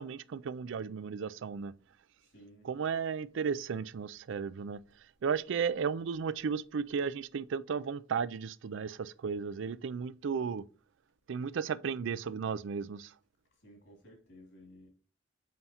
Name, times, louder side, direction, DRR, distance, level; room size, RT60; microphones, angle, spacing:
voice 1, 0.0-1.7 2.6-4.8 5.2-10.6 11.3-13.1, right 6 dB, 70° right, 0.4 m, -34 dB
voice 2, 2.2-2.7 13.6-14.9, equal, 65° left, 2.8 m, -56 dB
7.5 x 5.4 x 2.9 m
head